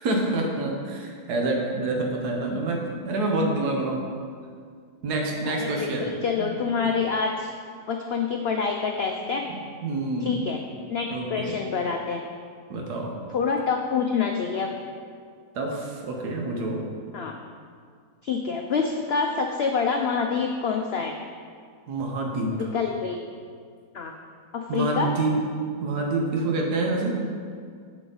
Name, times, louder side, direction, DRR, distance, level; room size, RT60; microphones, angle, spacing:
voice 1, 0.0-4.1 5.0-6.5 6.8-6.9 9.5-10.4 11.1-11.6 12.7-13.1 15.5-16.8 21.9-22.7 24.7-25.4 25.8-27.2, right 2 dB, 90° right, 1 dB, 1.5 m, -27 dB
voice 2, 5.5-7.5 7.9-9.4 10.2-10.6 10.9-12.2 13.3-14.7 17.1-17.3 18.2-21.1 22.5-23.2 23.9-24.1 24.5-25.1, left 5 dB, 75° left, 3 dB, 0.5 m, -26 dB
7.8 x 7.3 x 3.9 m, 2.1 s
omnidirectional pair, 1.7 m